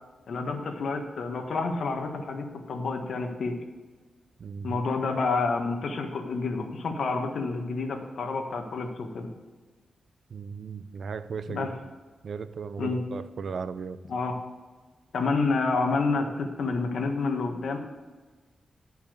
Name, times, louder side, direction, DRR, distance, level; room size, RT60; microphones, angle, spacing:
voice 1, 0.3-3.6 4.6-9.3 11.5-11.7 12.8-13.0 14.1-14.3 15.1-17.8, left 4 dB, 75° left, 3 dB, 1.5 m, -29 dB
voice 2, 4.4-4.8 10.3-11.9 12.2-14.0, right 5 dB, 65° right, 13 dB, 0.5 m, -36 dB
11.5 x 5.7 x 6.5 m, 1.3 s
wide cardioid pair, 125°, 0 cm